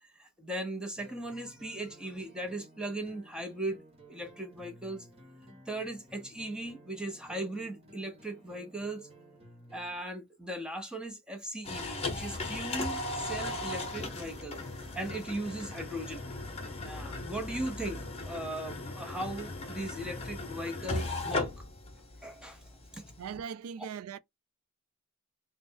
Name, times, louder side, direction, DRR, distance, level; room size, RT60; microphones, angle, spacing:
voice 1, 0.2-3.8 4.1-5.1 5.7-9.1 9.7-14.6 14.9-16.3 16.8-21.5 22.2-23.1, right 1 dB, 5° right, 0.8 m, -38 dB
sound 1, 0.9-10.0 12.4-20.7, right 1 dB, 30° right, 1.2 m, -57 dB
sound 2, 11.6-23.4, left 2 dB, 30° left, 1.0 m, -38 dB
voice 2, 23.2-24.2, right 7 dB, 85° right, 0.3 m, -39 dB
3.2 x 2.2 x 4.3 m
head